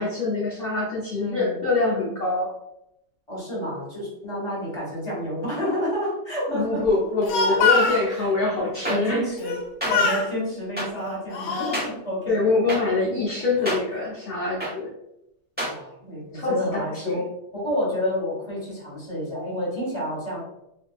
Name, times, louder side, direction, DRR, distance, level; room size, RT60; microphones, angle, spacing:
voice 1, 0.0-2.5 6.5-9.2 12.3-14.9 16.3-17.2, left 3 dB, 65° left, -7 dB, 0.5 m, -24 dB
voice 2, 1.1-1.6 3.3-6.8 7.5-7.7 8.1-8.3 8.9-9.6 9.8-12.4 13.6-13.8 15.6-17.3 17.5-20.4, equal, 20° left, -6 dB, 1.1 m, -29 dB
Speech, 7.0-8.0 9.4-9.6 9.9-10.3 11.0-11.8, left 4 dB, 85° left, 1.3 m, -23 dB
sound 1, 8.8-9.0 9.8-9.9 10.8-10.9 11.7-11.9 12.7-12.8 13.6-13.8 14.6-14.7 15.6-15.7, right 1 dB, 10° right, 0.5 m, -27 dB
2.7 x 2.6 x 2.3 m, 0.82 s
omnidirectional pair, 1.9 m